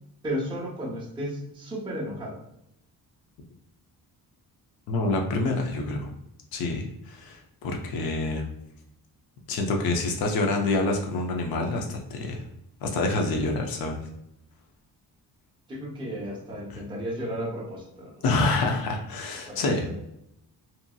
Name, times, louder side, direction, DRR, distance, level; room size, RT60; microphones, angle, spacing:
voice 1, 0.2-2.4 15.7-18.2 19.5-20.0, equal, 15° right, -4 dB, 0.6 m, -34 dB
voice 2, 4.9-6.1 6.5-8.5 9.5-12.4 12.8-14.0 16.7-16.8 18.2-19.9, left 2 dB, 75° left, 2 dB, 0.6 m, -27 dB
2.8 x 2.6 x 2.3 m, 0.81 s
wide cardioid pair, 170°, 37 cm